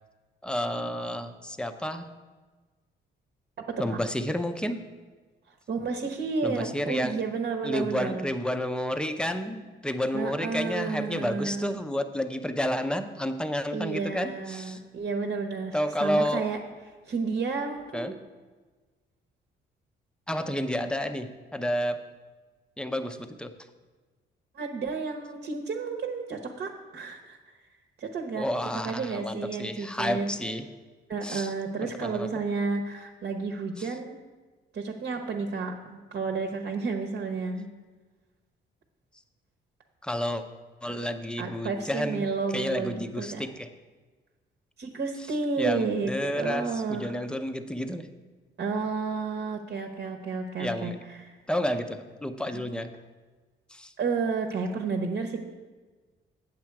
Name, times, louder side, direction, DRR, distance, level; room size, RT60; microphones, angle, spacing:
voice 1, 0.4-2.1 3.8-4.8 6.4-7.2 7.6-14.8 15.7-16.4 17.9-18.1 20.3-22.0 22.8-23.5 28.4-30.7 31.2-31.5 31.8-32.3 33.8-33.9 40.0-40.4 40.8-42.3 42.5-43.7 45.6-48.1 50.6-51.0 51.5-52.9 53.7-53.9, left 1 dB, 5° left, 8 dB, 0.6 m, -30 dB
voice 2, 3.6-4.0 5.7-8.3 10.1-11.8 13.7-16.6 17.1-18.2 24.5-27.4 28.0-28.5 28.7-30.3 31.1-34.2 34.7-37.7 40.8-40.9 41.4-43.4 44.8-47.2 48.6-51.4 52.5-52.6 54.0-55.4, right 4 dB, 55° right, 4 dB, 1.0 m, -31 dB
8.5 x 7.4 x 4.6 m, 1.3 s
cardioid pair, 90°, 20 cm